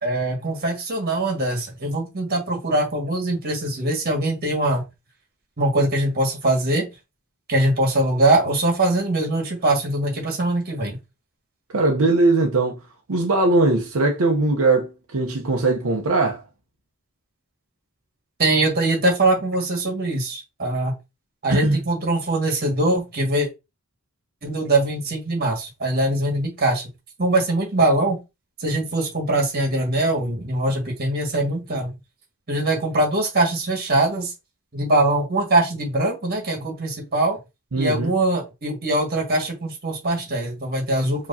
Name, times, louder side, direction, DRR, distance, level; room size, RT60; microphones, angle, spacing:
voice 1, 0.0-4.8 5.6-6.9 7.5-11.0 18.4-20.9 21.4-23.5 24.4-26.9 27.2-28.2 28.6-31.9 32.5-34.3 34.7-37.4 37.8-41.3, right 2 dB, 45° right, 1.7 m, -22 dB
voice 2, 11.7-12.8 13.1-16.4 21.5-21.8 37.7-38.1, right 2 dB, 80° right, 0.8 m, -20 dB
4.7 x 3.0 x 2.7 m
head